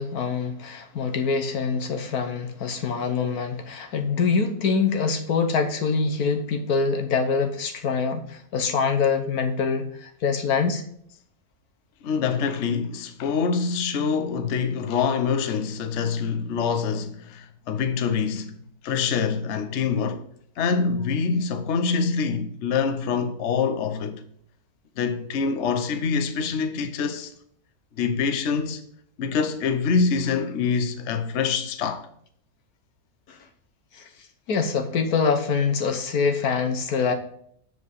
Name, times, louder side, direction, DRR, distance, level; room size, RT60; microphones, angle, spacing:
voice 1, 0.0-10.8 33.3-33.4 33.9-34.0 34.5-37.1, left 5 dB, 80° left, 1.5 m, -24 dB
voice 2, 12.0-18.6 18.8-20.3 20.6-24.2 25.0-27.3 28.0-28.8 29.2-32.1, left 5 dB, 55° left, 0.9 m, -25 dB
7.5 x 4.7 x 6.5 m
omnidirectional pair, 1.6 m